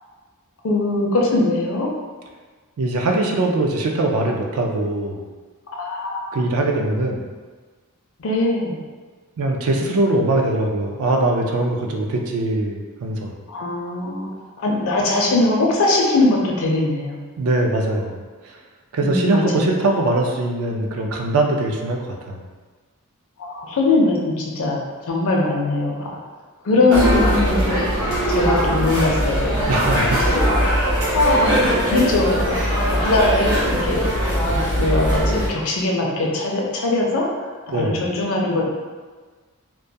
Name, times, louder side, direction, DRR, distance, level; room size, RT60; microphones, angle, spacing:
voice 1, 0.6-1.9 5.7-6.4 8.2-8.8 13.5-14.3 14.6-17.2 19.0-19.7 23.4-26.0 26.6-27.8 28.3-29.7 30.0-30.4 31.1-34.1 34.5-37.3 37.7-38.7, left 2 dB, 60° left, -1 dB, 0.5 m, -21 dB
voice 2, 2.8-5.2 6.3-7.3 9.4-13.3 17.4-18.2 18.9-22.4 29.7-30.2 37.7-38.0, right 2 dB, 70° right, 2 dB, 0.4 m, -21 dB
sound 1, 26.9-35.5, equal, 90° right, 0.9 m, -20 dB
2.2 x 2.2 x 2.7 m, 1.4 s
head